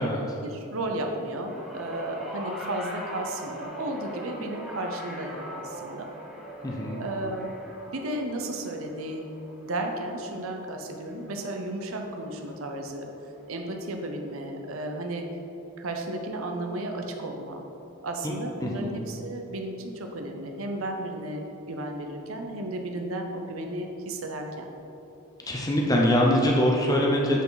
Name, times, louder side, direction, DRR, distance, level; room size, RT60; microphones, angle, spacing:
voice 1, 0.0-6.1 7.0-7.5 7.9-9.3 9.6-13.1 13.5-15.3 15.8-17.7 18.0-24.7, right 1 dB, 75° right, 3 dB, 0.7 m, -34 dB
sound 1, 1.4-11.8 12.9-13.0, equal, ahead, 1.0 m, -41 dB
voice 2, 6.6-7.0 18.2-18.3 18.6-18.9 25.4-27.4, equal, 15° left, -1 dB, 0.6 m, -23 dB
8.1 x 4.5 x 4.0 m, 2.9 s
head